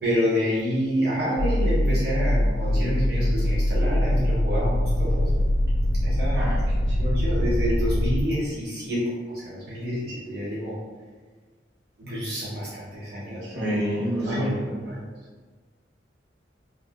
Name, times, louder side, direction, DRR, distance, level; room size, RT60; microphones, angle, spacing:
voice 1, 0.0-5.4 6.0-6.5 7.0-10.8 12.0-13.9 14.3-15.0, equal, 60° right, -8 dB, 0.8 m, -28 dB
sound 1, 1.4-8.2, equal, 75° left, 0.4 m, -23 dB
voice 2, 6.4-6.8 13.4-14.8, equal, 90° right, -7 dB, 1.0 m, -28 dB
2.4 x 2.2 x 3.4 m, 1.4 s
head